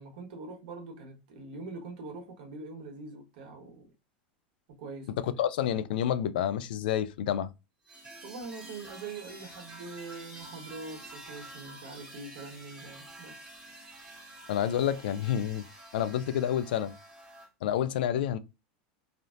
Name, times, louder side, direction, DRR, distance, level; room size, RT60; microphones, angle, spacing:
voice 1, 0.0-3.9 4.7-5.3 8.2-13.4, right 3 dB, 70° right, 1.3 m, -43 dB
voice 2, 5.4-7.5 14.5-15.6 15.9-17.0 17.6-18.4, left 10 dB, 80° left, 0.4 m, -29 dB
sound 1, 7.9-17.5, right 1 dB, 20° right, 1.4 m, -48 dB
3.3 x 2.6 x 2.4 m
hypercardioid pair, 110°, 5 cm